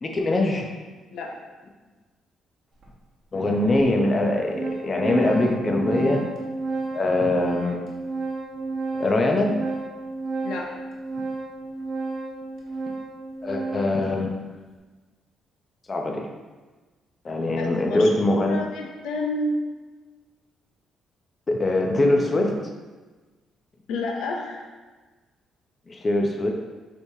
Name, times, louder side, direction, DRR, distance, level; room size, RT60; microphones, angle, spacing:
voice 1, 0.0-0.7 3.3-6.3 6.9-7.8 9.0-9.6 13.4-14.3 15.9-16.3 17.2-18.6 21.5-22.6 25.9-26.5, left 2 dB, 35° left, 2 dB, 0.5 m, -22 dB
Organ, 2.8-2.9 3.8-3.9 4.2-14.1, right 3 dB, 60° right, 0.9 m, -31 dB
voice 2, 17.6-19.6 23.9-24.7, left 2 dB, 85° left, 1 dB, 0.6 m, -30 dB
5.1 x 3.1 x 2.7 m, 1.3 s
cardioid pair, 90°, 0 cm